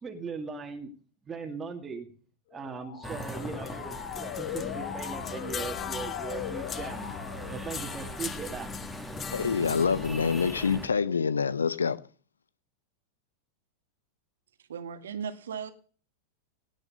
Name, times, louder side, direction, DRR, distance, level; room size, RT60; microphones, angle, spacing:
voice 1, 0.0-0.9 1.3-2.1 2.5-7.1 7.5-8.7, right 5 dB, 20° right, 2.2 m, -39 dB
Motor vehicle (road) / Siren, 2.5-8.4, left 11 dB, 50° left, 1.5 m, -40 dB
sound 1, 3.0-10.9, equal, 5° left, 2.2 m, -41 dB
sound 2, 3.2-9.9, left 7 dB, 25° left, 0.7 m, -41 dB
voice 2, 9.3-12.0, left 6 dB, 75° left, 0.7 m, -26 dB
voice 3, 14.7-15.7, right 7 dB, 65° right, 1.7 m, -36 dB
18.0 x 6.5 x 8.0 m
figure-of-eight pair, 90°, 0 cm